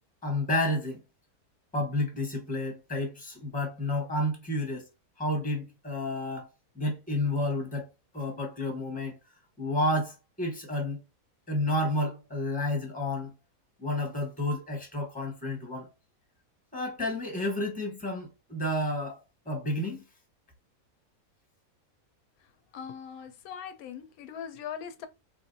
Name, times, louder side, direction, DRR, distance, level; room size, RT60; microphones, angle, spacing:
voice 1, 0.2-1.0 1.7-4.9 5.2-6.5 6.7-7.9 8.1-9.2 9.6-11.0 11.5-13.3 13.8-15.9 16.7-19.2 19.5-20.0, left 1 dB, 5° left, 1.0 m, -30 dB
voice 2, 22.7-25.1, left 8 dB, 90° left, 1.1 m, -40 dB
3.6 x 2.5 x 2.6 m
omnidirectional pair, 1.5 m